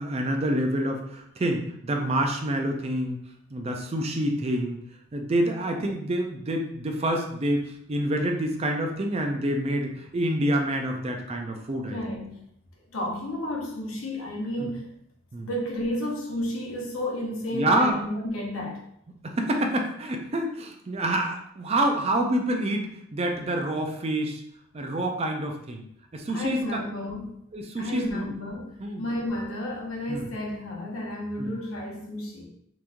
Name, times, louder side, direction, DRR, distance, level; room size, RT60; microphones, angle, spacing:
voice 1, 0.0-3.2 3.5-4.8 5.1-7.6 7.9-12.0 14.6-14.7 15.3-15.5 17.5-18.0 19.2-24.4 24.7-25.9 26.1-26.8 27.5-28.3 28.8-29.0 30.1-30.3 31.4-31.5, right 1 dB, 30° right, 3 dB, 0.4 m, -27 dB
voice 2, 11.9-12.4 12.9-14.9 15.4-18.8 26.3-27.4 27.8-28.7 29.0-32.5, left 1 dB, 85° left, -2 dB, 0.9 m, -32 dB
3.5 x 3.0 x 2.5 m, 0.71 s
head